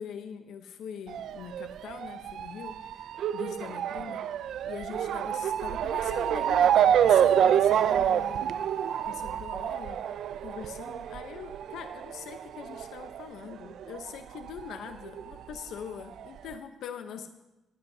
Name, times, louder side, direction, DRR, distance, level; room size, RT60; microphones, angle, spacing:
voice 1, 0.0-4.2 4.6-10.0 10.4-17.3, left 7 dB, 80° left, 7 dB, 0.8 m, -43 dB
Motor vehicle (road) / Siren, 1.1-14.1 14.4-15.5 16.2-16.3 16.5-16.6, right 9 dB, 70° right, 0.4 m, -27 dB
15.5 x 15.5 x 2.8 m, 0.99 s
cardioid pair, 90°, 0 cm